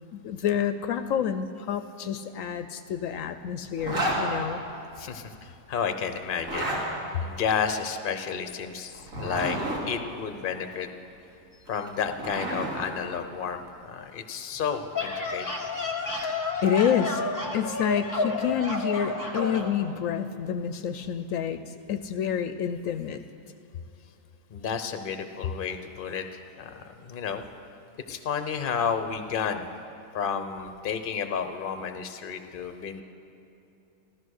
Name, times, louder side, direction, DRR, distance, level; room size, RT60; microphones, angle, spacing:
voice 1, 0.1-4.6 16.2-16.4 16.6-17.2 17.5-23.2, left 8 dB, 75° left, 10 dB, 0.9 m, -28 dB
Zipper (clothing), 3.8-4.2 6.3-6.8 8.9-9.8 11.7-12.8, right 1 dB, 75° right, 3.2 m, -30 dB
voice 2, 5.0-6.7 7.2-9.6 9.9-10.9 11.6-15.5 24.5-27.4 28.1-29.7 30.1-33.0, left 7 dB, 45° left, 8 dB, 0.9 m, -31 dB
sound 1, 14.7-19.7, left 2 dB, 15° left, 1.3 m, -30 dB
14.5 x 13.0 x 6.4 m, 2.8 s
omnidirectional pair, 1.4 m